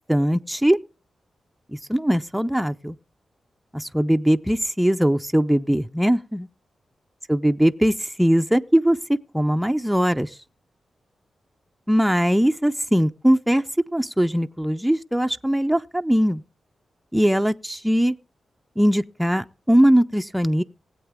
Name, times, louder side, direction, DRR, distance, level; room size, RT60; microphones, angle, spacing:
voice 1, 0.1-0.8 1.9-3.0 3.7-6.5 7.3-9.0 9.3-10.3 11.9-16.4 17.1-18.2 18.8-20.6, equal, 5° right, 0.5 m, -20 dB
19.0 x 8.0 x 3.5 m
cardioid pair, 65°, 0 cm